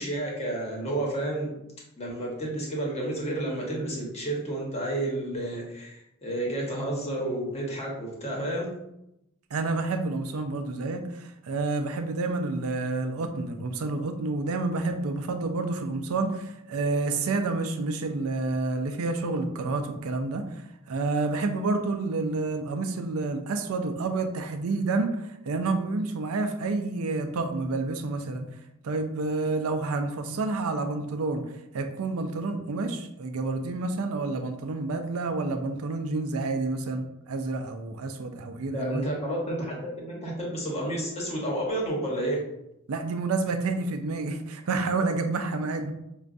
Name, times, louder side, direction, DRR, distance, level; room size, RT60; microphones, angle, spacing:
voice 1, 0.0-1.5 2.0-8.7 38.7-42.4, right 1 dB, 30° left, -3 dB, 0.9 m, -31 dB
voice 2, 9.5-20.4 20.9-28.5 28.8-31.4 31.7-39.1 42.9-45.9, right 3 dB, 70° right, 7 dB, 0.4 m, -29 dB
4.9 x 2.2 x 2.5 m, 0.85 s
head